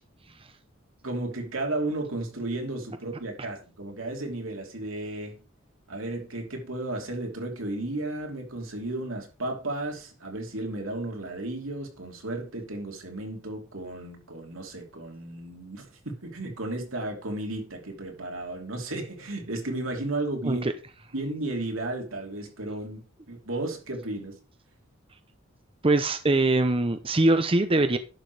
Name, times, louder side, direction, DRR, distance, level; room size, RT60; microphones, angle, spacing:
voice 1, 1.0-5.4 5.9-20.7 21.1-24.4, right 2 dB, 85° right, 3.1 m, -34 dB
voice 2, 25.8-28.0, right 2 dB, 25° right, 0.7 m, -22 dB
11.0 x 6.3 x 4.8 m
head